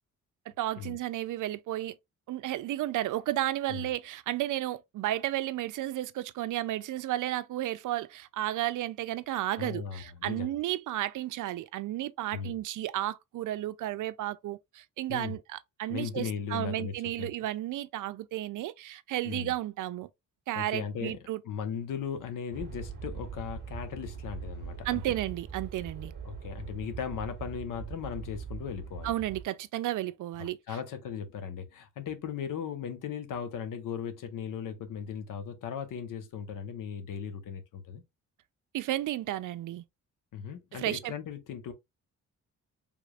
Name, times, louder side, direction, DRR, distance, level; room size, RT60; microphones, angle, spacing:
voice 1, 0.6-2.0 2.3-20.1 20.5-21.4 24.8-26.1 29.0-30.6 38.7-39.8 40.7-41.1, right 14 dB, 70° right, 0.5 m, -33 dB
voice 2, 9.6-10.6 12.3-12.6 15.1-15.4 15.9-17.3 19.2-19.5 20.5-21.2 21.4-25.1 26.2-29.1 30.4-38.0 40.3-41.7, left 7 dB, 90° left, 1.1 m, -37 dB
sound 1, 22.5-29.4, right 6 dB, 35° right, 1.4 m, -42 dB
5.0 x 3.5 x 2.4 m
wide cardioid pair, 175°, 31 cm